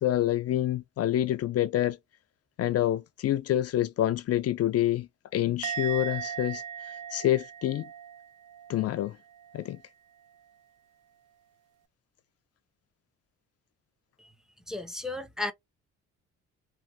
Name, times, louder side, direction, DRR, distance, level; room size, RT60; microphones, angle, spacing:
voice 1, 0.0-2.0 2.6-7.9 8.7-9.2 9.5-9.8, left 13 dB, 55° left, 0.4 m, -27 dB
Musical instrument, 5.6-9.0 9.3-9.7, right 8 dB, 85° right, 0.5 m, -38 dB
voice 2, 14.7-15.5, left 2 dB, ahead, 0.6 m, -34 dB
3.0 x 2.6 x 2.7 m
cardioid pair, 90°, 30 cm